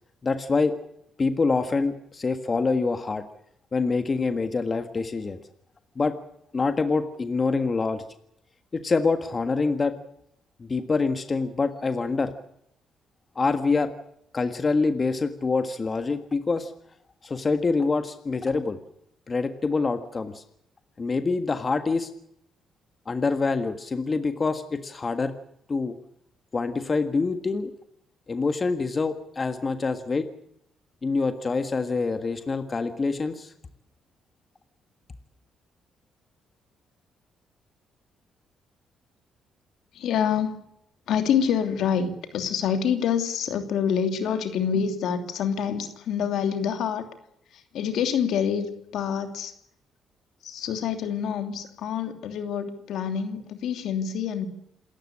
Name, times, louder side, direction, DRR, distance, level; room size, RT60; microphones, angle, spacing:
voice 1, 0.2-0.8 1.2-3.2 3.7-5.4 6.0-6.2 6.5-8.1 8.7-10.0 10.6-12.3 13.4-13.9 14.3-16.7 17.2-18.8 19.3-20.4 21.0-22.1 23.1-25.3 25.7-26.0 26.5-27.7 28.3-30.3 31.0-33.5, left 4 dB, 30° left, 9 dB, 1.6 m, -25 dB
voice 2, 39.9-40.6 41.1-47.1 47.5-49.5 50.4-54.5, left 7 dB, 75° left, 7 dB, 2.9 m, -26 dB
27.5 x 14.0 x 8.6 m, 0.76 s
cardioid pair, 95°, 0 cm